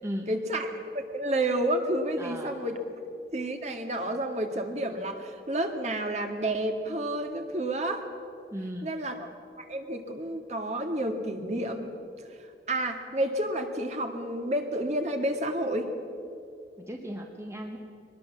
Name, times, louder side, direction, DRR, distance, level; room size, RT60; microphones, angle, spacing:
voice 1, 0.3-2.8 3.3-8.0 8.8-9.2 9.6-11.9 12.7-15.9, right 1 dB, 40° right, 5 dB, 2.0 m, -30 dB
voice 2, 2.2-2.5 8.5-8.9 16.8-17.8, equal, 15° right, 2 dB, 1.4 m, -36 dB
23.5 x 20.0 x 7.3 m, 2.5 s
head